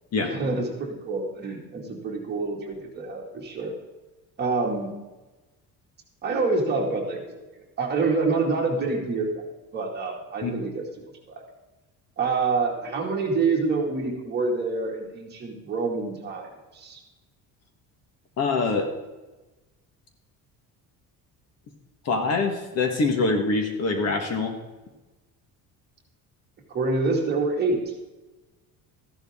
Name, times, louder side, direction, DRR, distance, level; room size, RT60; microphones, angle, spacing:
voice 1, 0.2-3.7 4.4-5.0 6.2-7.4 7.8-9.4 9.7-10.8 11.3-11.4 12.2-16.5 16.7-17.0 26.7-27.8, right 3 dB, 25° right, -1 dB, 2.3 m, -26 dB
voice 2, 18.4-18.9 22.0-24.5, left 3 dB, 45° left, 5 dB, 1.6 m, -24 dB
14.5 x 11.5 x 3.7 m, 1.1 s
cardioid pair, 180°, 37 cm